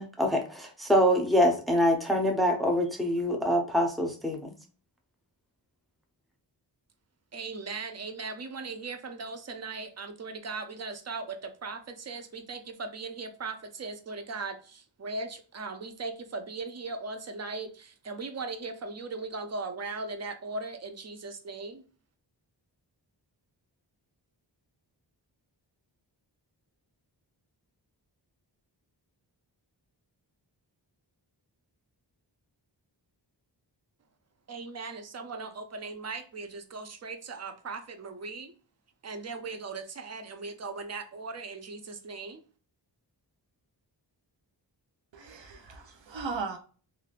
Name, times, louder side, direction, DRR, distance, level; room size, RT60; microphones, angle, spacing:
voice 1, 0.0-4.5, equal, ahead, 2 dB, 0.7 m, -25 dB
voice 2, 7.3-21.8 34.5-38.5 39.0-42.4, right 3 dB, 35° right, 7 dB, 0.6 m, -38 dB
voice 3, 45.1-46.6, right 4 dB, 85° right, 4 dB, 0.7 m, -37 dB
3.1 x 2.6 x 2.4 m, 0.38 s
wide cardioid pair, 65°, 44 cm